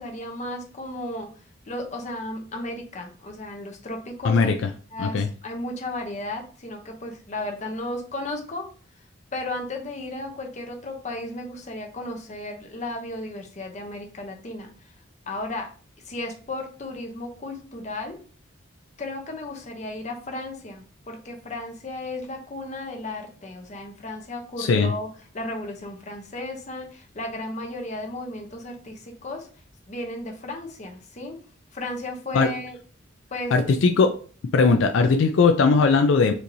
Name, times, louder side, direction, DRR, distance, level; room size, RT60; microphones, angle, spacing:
voice 1, 0.0-1.3 1.7-4.5 4.9-8.7 9.3-14.7 15.3-15.7 16.0-18.2 19.0-25.1 25.3-29.5 29.9-31.4 31.7-32.8 33.3-33.5, left 2 dB, 35° left, 3 dB, 0.7 m, -34 dB
voice 2, 4.2-4.5 5.0-5.3 24.6-24.9 32.3-32.5 33.5-34.2 34.5-36.3, left 4 dB, 70° left, 6 dB, 0.3 m, -19 dB
4.4 x 2.7 x 2.6 m, 0.40 s
head